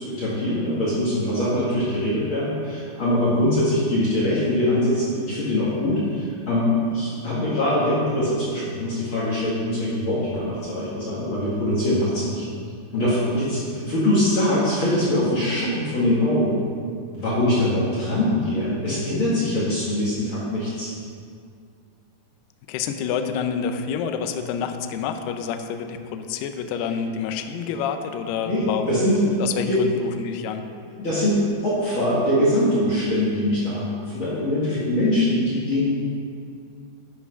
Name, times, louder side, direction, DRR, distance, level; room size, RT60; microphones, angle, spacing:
voice 1, 0.0-12.4 12.9-16.6 17.1-20.9 28.4-29.2 29.7-29.8 30.6-35.9, left 1 dB, 65° left, -8 dB, 1.3 m, -23 dB
voice 2, 22.7-28.9 29.2-30.6, left 7 dB, 85° left, 7 dB, 2.3 m, -28 dB
11.0 x 5.9 x 5.5 m, 2.3 s
omnidirectional pair, 5.4 m